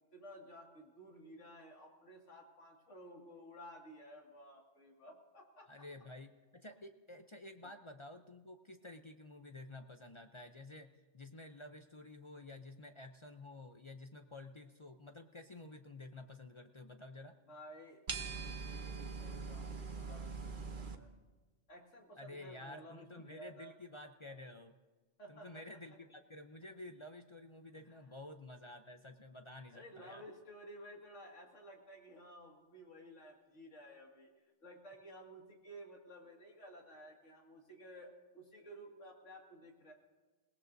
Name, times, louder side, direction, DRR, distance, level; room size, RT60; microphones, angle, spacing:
voice 1, 0.1-5.9 7.6-7.7 17.5-21.1 21.7-23.8 25.2-26.0 27.7-28.0 29.7-34.3 34.6-39.9, equal, 90° left, 0 dB, 2.5 m, -54 dB
voice 2, 5.7-17.3 22.2-24.8 25.3-30.2, left 2 dB, 35° left, 6 dB, 0.5 m, -51 dB
sound 1, 18.1-21.0, right 4 dB, 45° right, 1.0 m, -42 dB
28.5 x 18.0 x 2.7 m, 1.3 s
omnidirectional pair, 1.2 m